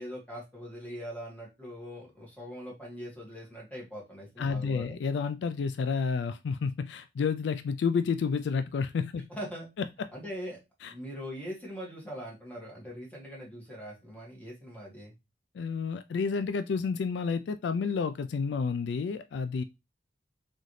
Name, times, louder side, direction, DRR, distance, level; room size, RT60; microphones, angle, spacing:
voice 1, 0.0-5.0 9.3-9.7 10.1-10.6 10.9-15.1, equal, 10° left, 1.9 m, -41 dB
voice 2, 4.4-9.3 10.8-10.9 15.6-19.6, left 5 dB, 70° left, 0.3 m, -30 dB
4.0 x 3.8 x 3.2 m
head